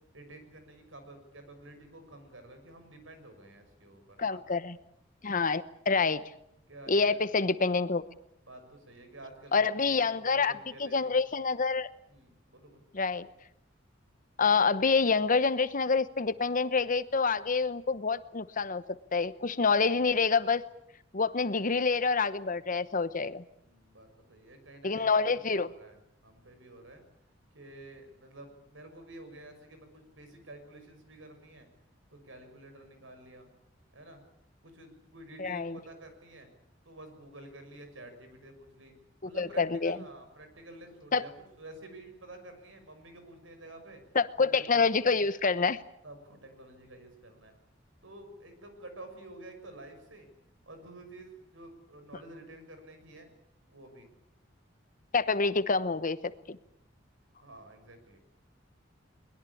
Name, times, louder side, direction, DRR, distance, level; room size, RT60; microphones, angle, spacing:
voice 1, 0.1-4.4 6.7-7.2 8.4-11.1 12.1-12.8 23.6-27.0 27.5-31.7 32.1-33.5 33.9-34.2 34.6-36.5 36.8-38.9 39.2-41.3 41.6-44.0 44.4-45.1 46.0-47.5 48.0-50.3 50.7-53.3 53.7-54.1 57.4-58.2, right 1 dB, 90° right, 7 dB, 6.2 m, -50 dB
voice 2, 4.2-4.8 5.2-6.2 6.9-8.0 9.5-11.9 12.9-13.3 14.4-20.6 21.1-23.4 24.8-25.7 35.4-35.8 39.4-40.0 41.1-41.2 44.1-45.8 55.1-56.6, left 4 dB, 45° left, 14 dB, 1.0 m, -27 dB
22.0 x 21.5 x 8.6 m, 0.77 s
head